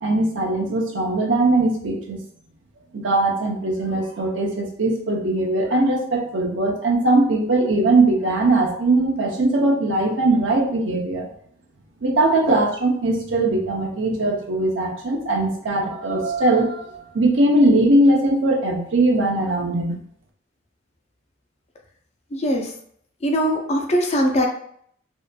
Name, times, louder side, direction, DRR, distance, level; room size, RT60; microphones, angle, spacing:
voice 1, 0.0-2.2 2.9-11.3 12.0-20.0, right 2 dB, 70° right, 0 dB, 0.6 m, -20 dB
voice 2, 22.3-22.7 23.2-24.5, equal, 35° left, 2 dB, 0.4 m, -21 dB
2.7 x 2.5 x 2.2 m, 0.64 s
head